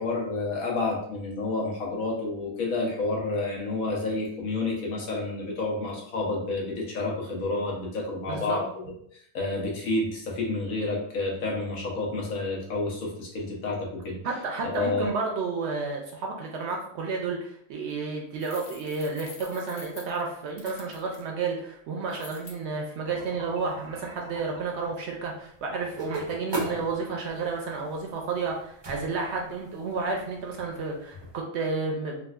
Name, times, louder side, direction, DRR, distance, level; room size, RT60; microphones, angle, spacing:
voice 1, 0.0-8.9 9.3-14.2 14.7-15.1, left 3 dB, 85° left, -2 dB, 1.3 m, -29 dB
voice 2, 8.3-8.6 14.2-32.2, right 4 dB, 65° right, 0 dB, 0.7 m, -31 dB
sound 1, 18.4-21.2 22.1-22.6, left 5 dB, 60° left, 0.6 m, -47 dB
sound 2, 23.0-31.4, right 2 dB, 40° right, 0.4 m, -39 dB
3.8 x 2.3 x 2.3 m, 0.67 s
omnidirectional pair, 1.4 m